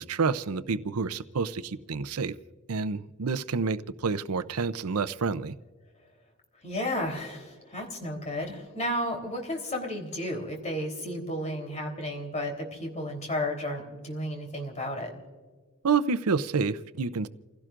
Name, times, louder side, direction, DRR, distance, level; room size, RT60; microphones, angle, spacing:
voice 1, 0.0-2.3 2.7-5.5 15.8-17.3, right 5 dB, 85° right, 12 dB, 0.6 m, -28 dB
voice 2, 6.6-15.1, left 1 dB, 35° left, 2 dB, 3.5 m, -33 dB
29.0 x 16.5 x 2.5 m, 1.5 s
head